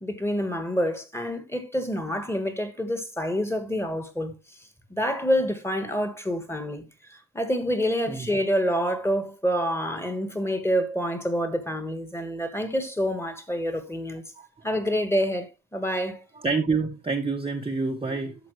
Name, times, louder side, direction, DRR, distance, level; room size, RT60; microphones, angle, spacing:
voice 1, 0.0-4.3 4.9-6.8 7.1-14.2 14.6-16.2, equal, 5° left, 1.3 m, -27 dB
voice 2, 16.4-18.3, right 4 dB, 15° right, 0.8 m, -27 dB
11.5 x 7.1 x 3.1 m
cardioid pair, 165°, 35 cm